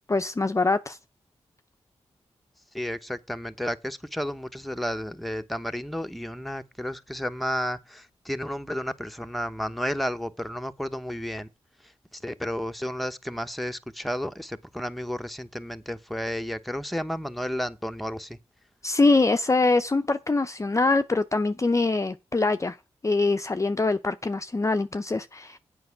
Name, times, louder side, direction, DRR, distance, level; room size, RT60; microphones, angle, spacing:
voice 1, 0.1-1.0 18.8-22.8 23.0-25.6, left 3 dB, 25° left, 0.6 m, -23 dB
voice 2, 2.7-11.5 11.8-18.4, equal, ahead, 1.0 m, -32 dB
7.8 x 5.4 x 7.1 m
supercardioid pair, 45°, 12 cm